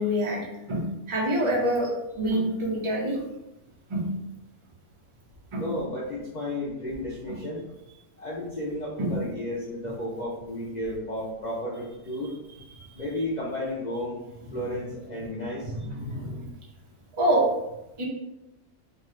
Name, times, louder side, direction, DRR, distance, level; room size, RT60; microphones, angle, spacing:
voice 1, 0.0-1.9 2.2-3.2 3.9-4.1 5.5-5.6 7.3-7.4 9.0-9.1 15.7-16.5 17.2-17.5 18.0-18.1, right 1 dB, 45° right, -3 dB, 0.4 m, -26 dB
voice 2, 5.5-7.6 8.2-12.3 12.9-14.2 14.5-15.7, left 1 dB, 80° left, -5 dB, 0.4 m, -33 dB
2.7 x 2.4 x 3.1 m, 0.91 s
omnidirectional pair, 1.5 m